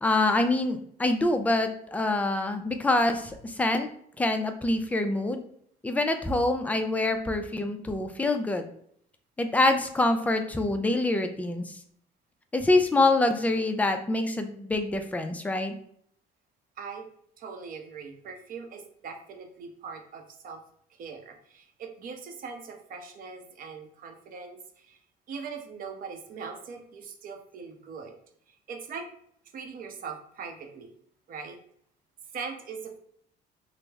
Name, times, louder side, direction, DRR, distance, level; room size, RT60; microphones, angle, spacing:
voice 1, 0.0-3.9 4.2-5.4 5.8-8.7 9.4-11.7 12.5-15.7, left 2 dB, 10° left, 6 dB, 0.4 m, -25 dB
voice 2, 17.4-20.6 20.9-25.0 25.3-28.1 28.5-29.1 29.5-30.9 31.3-31.6 32.3-33.0, right 5 dB, 55° right, 4 dB, 0.7 m, -41 dB
3.2 x 2.0 x 3.4 m, 0.66 s
cardioid pair, 110°, 17 cm